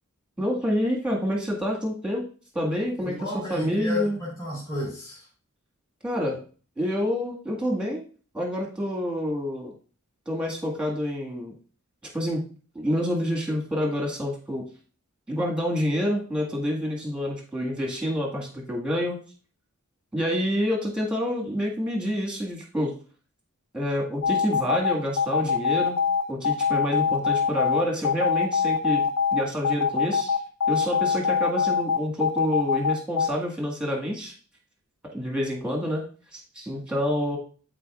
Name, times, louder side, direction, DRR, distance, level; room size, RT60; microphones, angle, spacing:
voice 1, 0.4-2.2 2.5-3.2 3.5-4.2 6.0-6.4 6.8-8.0 8.3-9.7 10.3-11.5 12.1-12.4 12.8-14.7 15.3-19.2 20.1-22.9 23.7-26.0 26.3-29.0 29.3-30.4 30.7-34.3 35.1-36.0 36.3-37.4, equal, 5° right, -1 dB, 1.8 m, -27 dB
voice 2, 3.0-5.3, left 2 dB, 15° left, -8 dB, 2.6 m, -32 dB
sound 1, 24.2-33.3, left 6 dB, 65° left, 0.6 m, -23 dB
11.5 x 4.5 x 2.4 m, 0.39 s
head